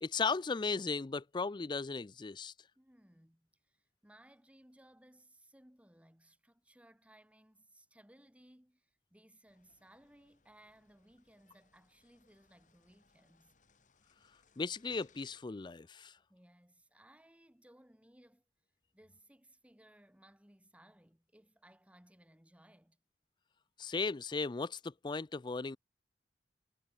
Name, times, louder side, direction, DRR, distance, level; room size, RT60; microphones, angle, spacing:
voice 1, 0.0-2.5 14.6-16.1 23.8-25.8, left 4 dB, 25° left, 0.4 m, -36 dB
voice 2, 2.8-13.6 16.3-18.4 18.9-23.0, right 1 dB, 10° right, 2.0 m, -63 dB
sound 1, 9.5-15.4, left 5 dB, 45° left, 3.0 m, -71 dB
head